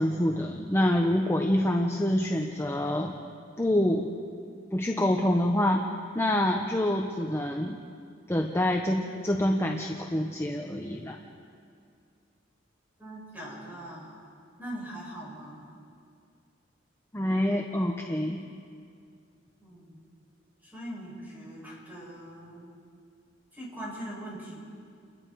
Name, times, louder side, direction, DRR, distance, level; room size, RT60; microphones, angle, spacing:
voice 1, 0.0-3.2 3.6-4.1 4.7-5.9 6.1-7.8 8.3-11.2 17.1-18.4, left 1 dB, 15° left, 2 dB, 0.9 m, -26 dB
voice 2, 13.0-14.3 14.6-15.7 19.6-20.0 20.6-22.7 23.5-24.6, right 1 dB, 10° right, -5 dB, 7.8 m, -41 dB
29.0 x 20.5 x 4.7 m, 2.3 s
head